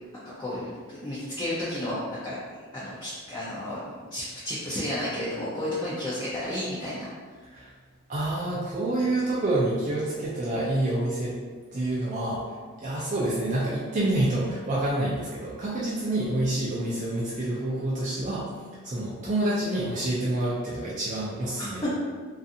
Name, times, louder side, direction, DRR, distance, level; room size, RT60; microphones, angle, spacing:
voice 1, 0.4-2.0 2.2-2.4 2.7-3.8 4.1-7.1 21.8-21.9, left 1 dB, 20° left, -9 dB, 0.4 m, -32 dB
voice 2, 8.1-11.4 11.7-12.4 12.8-18.5 18.8-21.8, right 1 dB, 35° right, -6 dB, 0.4 m, -27 dB
2.5 x 2.4 x 2.6 m, 1.5 s
head